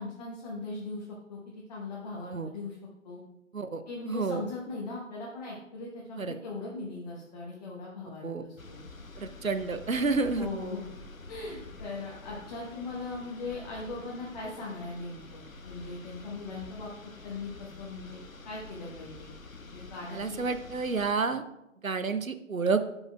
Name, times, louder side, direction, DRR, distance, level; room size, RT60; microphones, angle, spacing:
voice 1, 0.0-2.8 3.0-3.2 3.9-8.8 10.3-10.9 11.3-16.9 17.2-18.2 18.4-19.3 19.7-20.4, left 3 dB, 30° left, -5 dB, 1.3 m, -39 dB
voice 2, 3.5-4.4 6.2-6.3 8.2-8.4 9.2-10.5 20.1-21.4 21.8-22.8, right 4 dB, 90° right, 11 dB, 0.7 m, -30 dB
sound 1, 8.6-21.1, left 3 dB, 90° left, 0.8 m, -47 dB
11.5 x 5.5 x 2.3 m, 0.88 s
figure-of-eight pair, 140°, 40 cm